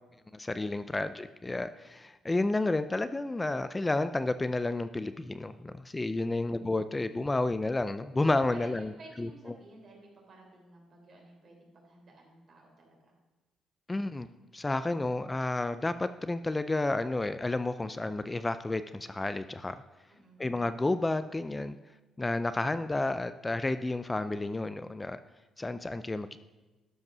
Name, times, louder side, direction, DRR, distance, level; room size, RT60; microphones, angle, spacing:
voice 1, 0.3-8.9 9.2-9.3 13.9-14.3 14.5-19.8 20.4-21.8 22.2-25.2 25.6-26.4, left 2 dB, 20° left, 12 dB, 0.4 m, -31 dB
voice 2, 8.5-13.2 20.1-20.5, right 2 dB, 50° right, 0 dB, 3.5 m, -54 dB
12.0 x 5.4 x 6.1 m, 1.1 s
cardioid pair, 90°, 0 cm